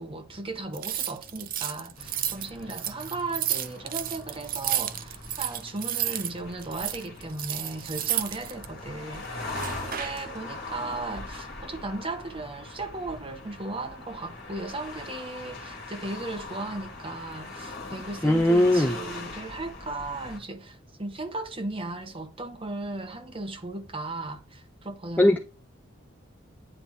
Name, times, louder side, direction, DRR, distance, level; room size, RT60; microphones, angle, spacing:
voice 1, 0.0-25.4, right 2 dB, 25° right, 1.0 m, -36 dB
sound 1, 0.7-6.3 6.6-8.7 9.5-10.2, right 11 dB, 45° right, 0.5 m, -31 dB
sound 2, 2.0-20.4, left 3 dB, 45° left, 2.1 m, -41 dB
voice 2, 18.2-19.0 25.2-25.4, left 1 dB, 10° left, 0.5 m, -19 dB
9.8 x 3.4 x 3.0 m
head